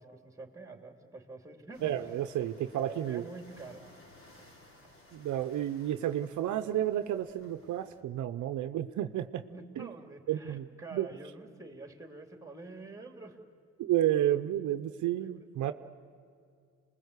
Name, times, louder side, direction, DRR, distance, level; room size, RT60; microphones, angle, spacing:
voice 1, 0.0-2.1 2.8-3.8 9.5-13.4 15.2-15.7, right 3 dB, 10° right, 4 dB, 3.3 m, -47 dB
sound 1, 1.7-8.0, left 1 dB, 45° left, 4.5 m, -58 dB
voice 2, 1.8-3.2 5.1-9.4 9.8-9.9 10.3-10.6 10.9-11.1 13.8-15.7, right 12 dB, 75° right, 10 dB, 0.8 m, -31 dB
28.0 x 20.5 x 8.3 m, 2.4 s
cardioid pair, 90°, 30 cm